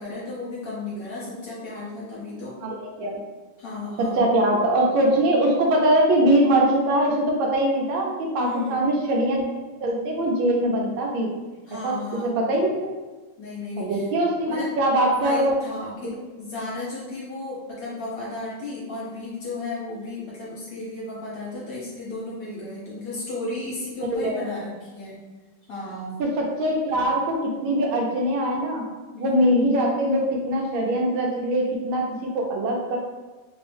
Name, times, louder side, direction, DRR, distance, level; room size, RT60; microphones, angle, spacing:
voice 1, 0.0-2.6 3.6-4.3 8.4-8.9 11.7-12.4 13.4-14.1 14.5-14.7 15.1-25.2 25.7-26.2 29.1-29.7, left 2 dB, 55° left, -7 dB, 1.1 m, -34 dB
voice 2, 2.6-3.2 4.0-9.4 9.8-11.3 11.8-12.9 13.8-15.5 16.0-16.1 24.0-24.4 26.2-28.9 29.2-32.1 32.3-33.0, right 1 dB, 80° right, 0 dB, 1.5 m, -22 dB
3.5 x 2.6 x 3.4 m, 1.2 s
omnidirectional pair, 2.2 m